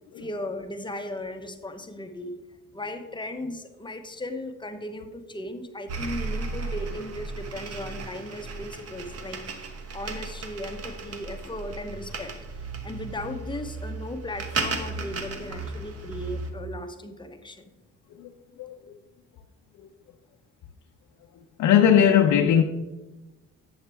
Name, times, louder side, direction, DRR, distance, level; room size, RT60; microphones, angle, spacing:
voice 1, 0.2-2.4 2.7-9.4 9.9-12.3 12.8-17.7, left 1 dB, 15° left, 0.8 m, -36 dB
sound 1, 5.9-16.5, right 3 dB, 55° right, 1.0 m, -35 dB
voice 2, 21.6-22.6, left 9 dB, 75° left, 0.6 m, -19 dB
8.0 x 7.2 x 3.4 m
cardioid pair, 90°, 30 cm